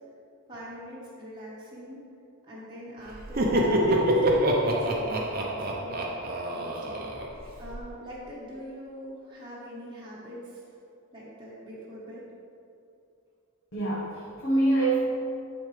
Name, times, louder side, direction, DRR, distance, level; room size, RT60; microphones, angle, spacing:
voice 1, 0.5-2.0 2.4-7.0 7.6-10.8 11.1-12.2, equal, 20° right, -8 dB, 1.3 m, -43 dB
Laughter, 3.1-7.8, right 1 dB, 45° right, 0.7 m, -26 dB
voice 2, 13.7-15.0, right 2 dB, 55° left, -9 dB, 1.3 m, -25 dB
10.5 x 4.3 x 3.3 m, 2.5 s
head